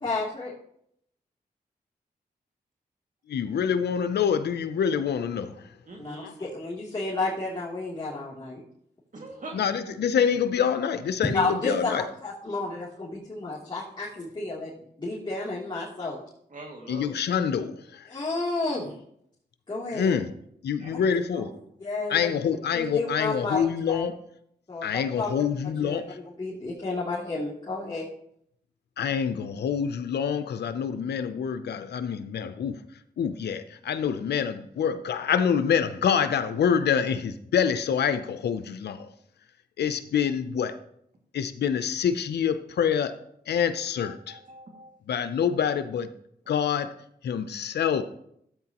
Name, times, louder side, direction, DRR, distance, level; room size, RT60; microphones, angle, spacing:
voice 1, 0.0-0.5 6.0-8.6 11.3-14.7 15.0-16.2 18.1-18.9 19.7-20.2 21.8-22.3 22.7-24.0 24.7-24.8 25.2-25.3 25.8-26.0 26.4-28.0, left 3 dB, 30° left, 2.8 m, -31 dB
voice 2, 3.3-5.7 6.2-6.3 9.5-12.0 16.9-18.1 19.9-20.3 20.6-21.5 22.1-24.2 24.8-26.2 29.0-32.8 33.2-39.1 39.8-40.8 41.3-43.2 43.5-44.4 45.1-46.1 46.5-47.0 47.2-48.0, left 7 dB, 80° left, 0.6 m, -26 dB
voice 3, 5.9-6.3 9.1-9.9 16.5-17.2 20.8-21.6 44.0-44.9, right 2 dB, 50° right, 2.1 m, -43 dB
13.5 x 8.1 x 2.9 m
cardioid pair, 50°, 17 cm